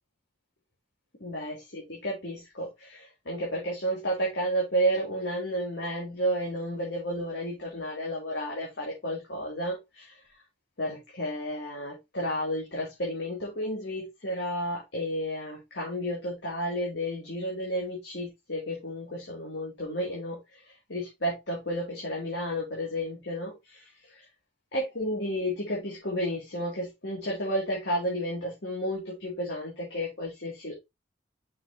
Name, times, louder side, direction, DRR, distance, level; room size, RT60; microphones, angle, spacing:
voice 1, 1.2-10.1 10.8-20.4 20.9-23.8 24.7-30.7, equal, 75° left, 2.6 m, -32 dB
6.3 x 5.9 x 2.8 m
head